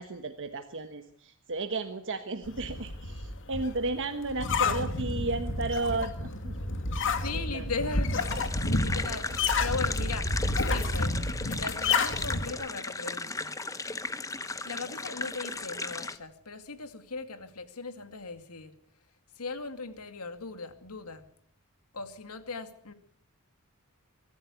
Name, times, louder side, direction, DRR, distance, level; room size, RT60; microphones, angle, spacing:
voice 1, 0.0-6.5 7.3-7.7, right 3 dB, 60° right, 7 dB, 1.3 m, -34 dB
sound 1, 2.4-12.5, left 3 dB, 60° left, 2.3 m, -30 dB
voice 2, 7.0-8.2 8.8-9.3 9.6-10.3 10.6-11.2 11.5-13.5 14.6-18.7 19.4-21.2 21.9-22.9, left 4 dB, 85° left, 9 dB, 2.4 m, -38 dB
sound 2, 8.1-16.2, left 3 dB, 15° left, 0.9 m, -36 dB
24.0 x 13.5 x 8.3 m, 0.63 s
head